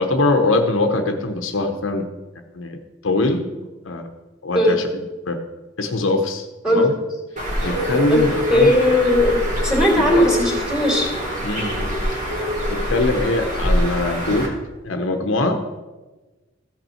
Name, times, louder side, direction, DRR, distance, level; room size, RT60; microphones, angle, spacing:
voice 1, 0.0-2.1 2.5-3.5 3.8-4.1 4.4-4.9 5.3-5.4 5.8-6.9 7.6-8.8 10.0-10.2 11.4-12.0 12.7-14.5 14.8-15.8, left 2 dB, 70° left, 5 dB, 0.8 m, -22 dB
Bird, 7.4-14.5, equal, 40° right, 1.9 m, -24 dB
voice 2, 8.5-11.1, left 1 dB, 5° right, -2 dB, 2.5 m, -17 dB
14.5 x 5.5 x 4.4 m, 1.2 s
head